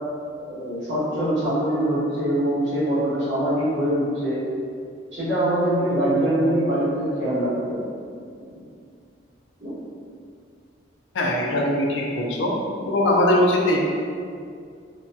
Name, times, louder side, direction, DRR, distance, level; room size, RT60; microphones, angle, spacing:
voice 1, 0.5-4.4 5.1-7.9 9.6-9.7 12.8-12.9, right 1 dB, 70° right, -12 dB, 1.4 m, -23 dB
voice 2, 11.1-12.5 12.9-13.8, left 1 dB, 80° left, -1 dB, 0.4 m, -21 dB
2.7 x 2.2 x 2.7 m, 2.3 s
head